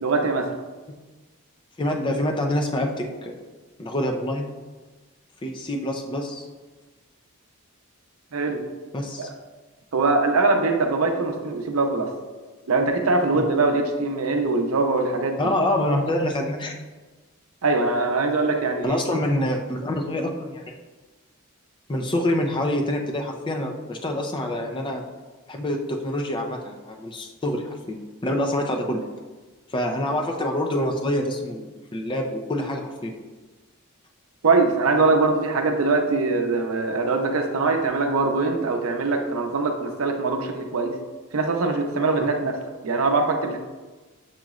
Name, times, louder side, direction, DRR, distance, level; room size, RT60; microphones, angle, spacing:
voice 1, 0.0-0.5 8.3-8.6 9.2-9.3 9.9-12.1 12.7-15.5 17.6-19.0 34.4-41.0 41.3-42.5 42.8-43.6, right 3 dB, 75° right, 3 dB, 0.6 m, -22 dB
voice 2, 1.8-3.3 3.8-4.5 5.4-6.5 8.9-9.3 15.4-16.7 18.8-20.6 21.9-25.0 25.5-28.0 28.2-29.0 29.7-33.1, left 1 dB, 20° left, 2 dB, 0.4 m, -26 dB
7.3 x 3.0 x 2.4 m, 1.3 s
head